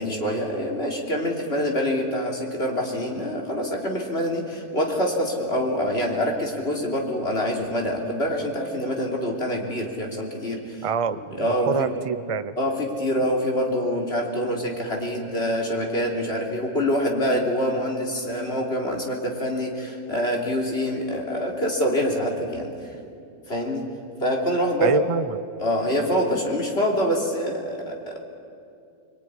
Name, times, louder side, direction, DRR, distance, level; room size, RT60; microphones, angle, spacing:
voice 1, 0.0-11.9 12.6-22.7 23.5-23.9 24.2-25.0 25.6-28.3, equal, 40° left, 0 dB, 3.5 m, -25 dB
voice 2, 10.8-12.5 24.8-25.4, right 5 dB, 55° right, 12 dB, 0.3 m, -26 dB
25.5 x 22.5 x 9.8 m, 2.5 s
omnidirectional pair, 1.6 m